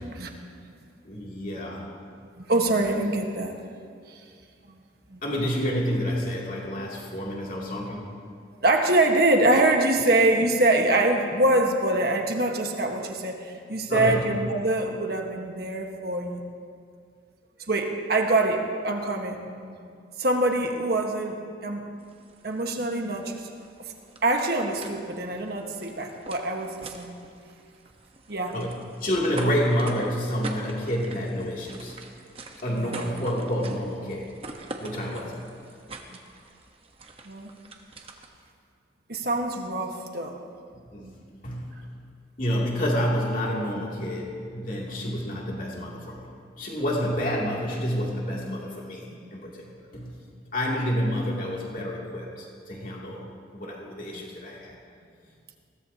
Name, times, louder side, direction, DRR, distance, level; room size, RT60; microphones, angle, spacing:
voice 1, 1.0-1.9 5.2-8.1 13.9-14.2 28.5-32.0 32.6-34.4 34.8-35.4 40.9-41.1 41.4-41.9 42.4-50.2 50.5-53.2 53.5-54.7, equal, 45° left, -4 dB, 2.7 m, -29 dB
voice 2, 2.4-3.5 4.1-4.2 5.1-5.2 8.6-16.4 17.7-21.4 21.6-21.8 22.4-23.4 24.2-27.3 28.3-28.5 29.4-29.5 32.7-33.1 37.2-37.5 39.1-40.4 41.0-41.1 49.1-49.3 54.1-54.2, right 2 dB, 55° right, 2 dB, 1.4 m, -25 dB
sound 1, 22.0-38.5, right 2 dB, 30° right, 1.1 m, -44 dB
21.0 x 17.0 x 2.9 m, 2.3 s
head